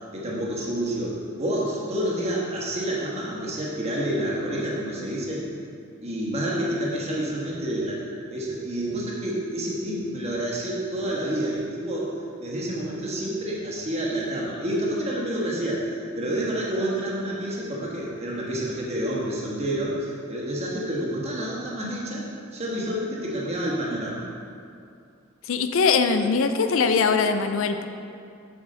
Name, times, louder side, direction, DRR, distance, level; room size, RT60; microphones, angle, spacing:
voice 1, 0.1-5.5 6.0-8.0 8.3-12.1 12.4-22.3 22.5-24.2, right 1 dB, 30° right, -4 dB, 1.5 m, -28 dB
voice 2, 25.5-27.9, left 5 dB, 70° left, 8 dB, 0.4 m, -21 dB
7.7 x 6.9 x 3.9 m, 2.4 s
head